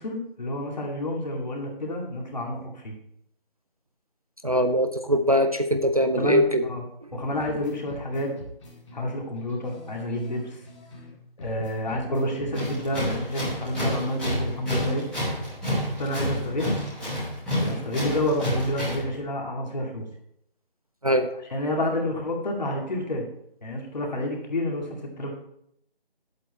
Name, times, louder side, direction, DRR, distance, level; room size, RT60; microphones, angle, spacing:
voice 1, 0.0-3.0 6.1-6.8 7.1-8.3 8.9-10.6 11.4-15.1 16.0-16.7 17.6-20.1 21.5-23.3 23.6-25.3, left 1 dB, 45° left, 0 dB, 2.3 m, -29 dB
voice 2, 4.4-6.7 21.0-21.3, equal, 40° right, 7 dB, 0.5 m, -22 dB
sound 1, 7.4-11.1 11.4-14.6, right 1 dB, 30° left, 2.3 m, -44 dB
Tools, 12.5-19.1, equal, ahead, 1.4 m, -29 dB
9.2 x 8.3 x 4.1 m, 0.74 s
figure-of-eight pair, 165°, 30 cm